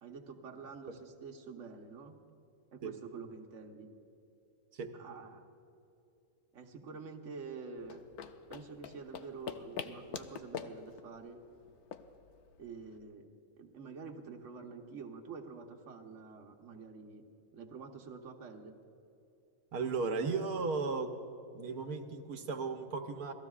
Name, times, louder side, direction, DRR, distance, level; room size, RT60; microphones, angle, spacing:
voice 1, 0.0-2.2 2.7-3.9 4.9-5.4 6.5-8.0 8.5-11.4 12.6-13.3 13.6-17.2 17.5-18.8, right 5 dB, 55° right, 2 dB, 1.4 m, -47 dB
sound 1, 7.8-13.0, left 8 dB, 85° left, 1.2 m, -45 dB
voice 2, 19.7-21.1 21.5-23.3, right 4 dB, 80° right, 5 dB, 1.5 m, -35 dB
27.5 x 19.0 x 2.4 m, 2.7 s
omnidirectional pair, 1.6 m